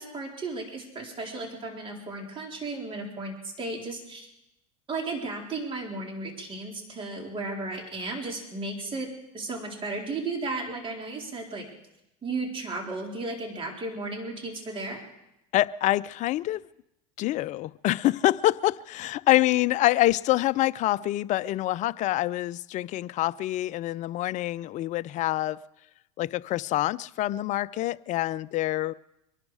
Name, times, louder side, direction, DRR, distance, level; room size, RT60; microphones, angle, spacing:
voice 1, 0.0-4.3 4.9-9.1 9.3-11.6 12.2-15.0, right 3 dB, 30° right, 1 dB, 4.0 m, -34 dB
voice 2, 15.5-16.6 17.2-25.6 26.2-28.9, left 16 dB, 45° left, 17 dB, 0.5 m, -26 dB
24.0 x 12.0 x 4.9 m, 0.88 s
supercardioid pair, 100°, 17 cm